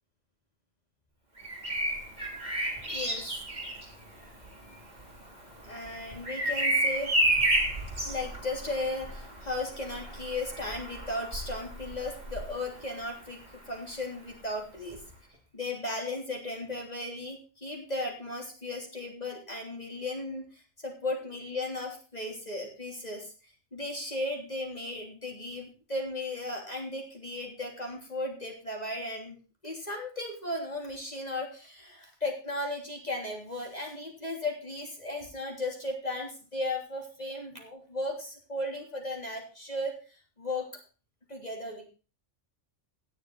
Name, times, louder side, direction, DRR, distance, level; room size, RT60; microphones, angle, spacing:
Bird vocalization bird call bird song, 1.4-13.2 14.9-15.1, right 1 dB, 35° right, 3.8 m, -32 dB
voice 1, 2.8-3.3 5.6-7.1 8.1-15.0 15.5-23.3 23.7-29.4 29.6-39.9 40.4-40.7 41.3-41.9, left 2 dB, 30° left, 1 dB, 3.5 m, -36 dB
18.0 x 6.8 x 4.1 m, 0.34 s
omnidirectional pair, 1.3 m